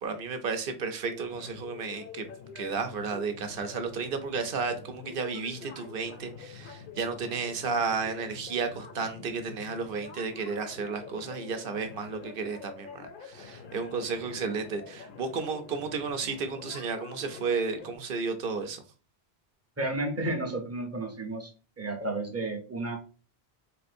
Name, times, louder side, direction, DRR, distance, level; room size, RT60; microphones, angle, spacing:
voice 1, 0.0-2.3 2.6-18.8, right 5 dB, 65° right, 0.7 m, -33 dB
sound 1, 1.0-18.0, left 6 dB, 60° left, 0.7 m, -46 dB
voice 2, 19.8-21.5 21.8-23.0, right 2 dB, 20° right, 0.5 m, -32 dB
3.6 x 2.5 x 2.5 m
omnidirectional pair, 1.1 m